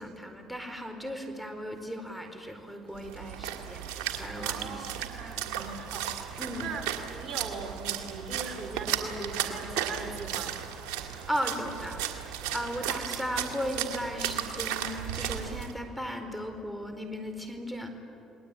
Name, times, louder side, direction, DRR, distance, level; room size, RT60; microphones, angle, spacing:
voice 1, 0.0-5.3 6.4-6.7 11.3-17.9, equal, ahead, 5 dB, 4.5 m, -36 dB
Splash splatter, 3.0-15.7, right 10 dB, 80° right, 2.3 m, -35 dB
voice 2, 4.4-10.7, right 4 dB, 50° right, 3 dB, 5.4 m, -40 dB
29.5 x 20.5 x 9.2 m, 2.8 s
supercardioid pair, 65°, 0 cm